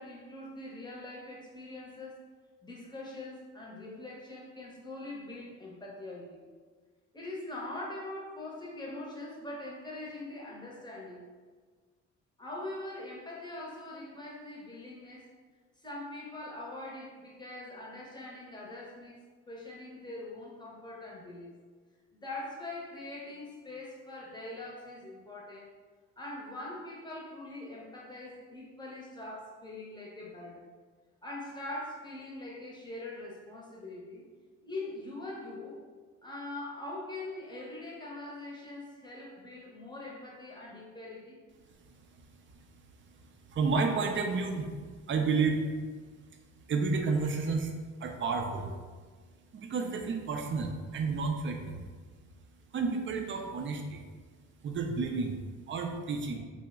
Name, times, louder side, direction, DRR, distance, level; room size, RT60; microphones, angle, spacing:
voice 1, 0.0-2.2 2.6-6.4 7.1-11.2 12.4-15.3 15.8-19.2 19.5-21.5 22.1-25.7 26.2-30.7 31.2-34.2 34.6-35.8 36.2-41.4, left 2 dB, 15° left, -3 dB, 0.7 m, -42 dB
voice 2, 43.5-44.7 45.1-45.7 46.7-47.7 48.0-48.7 49.5-51.9 52.7-54.1 54.6-55.4 55.7-56.4, right 4 dB, 40° right, 4 dB, 0.5 m, -31 dB
2.9 x 2.1 x 3.5 m, 1.5 s
cardioid pair, 90°, 30 cm